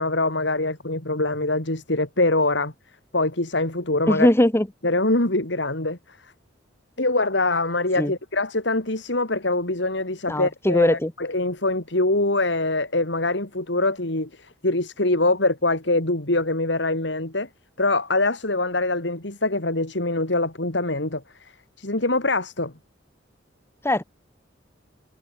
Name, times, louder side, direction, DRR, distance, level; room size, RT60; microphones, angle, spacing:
voice 1, 0.0-2.7 3.1-4.3 4.8-6.2 7.0-17.5 17.8-21.5 21.8-22.7, left 2 dB, 65° left, 3.6 m, -24 dB
voice 2, 4.1-4.7 8.0-8.1 10.3-11.1 23.8-24.0, left 1 dB, 15° left, 1.4 m, -20 dB
head